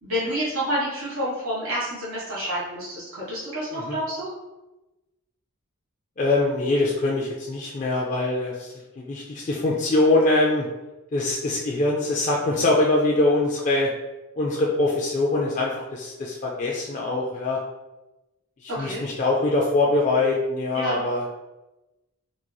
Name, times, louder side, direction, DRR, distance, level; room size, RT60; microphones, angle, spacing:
voice 1, 0.0-4.3 18.7-19.0 20.7-21.0, equal, 75° right, -8 dB, 1.5 m, -29 dB
voice 2, 6.2-10.7 11.1-13.9 14.4-17.6 18.6-21.3, left 2 dB, 35° left, -3 dB, 0.3 m, -23 dB
3.8 x 3.0 x 2.2 m, 1.0 s
head